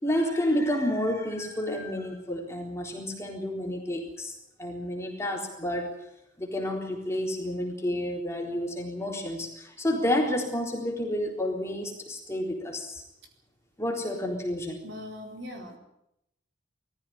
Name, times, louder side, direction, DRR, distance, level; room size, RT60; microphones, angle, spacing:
voice 1, 0.0-5.9 6.4-13.0 13.8-14.8, left 1 dB, 15° left, 0 dB, 3.8 m, -30 dB
voice 2, 14.8-15.8, left 1 dB, 60° right, 2 dB, 4.4 m, -40 dB
21.0 x 14.5 x 9.8 m, 0.82 s
head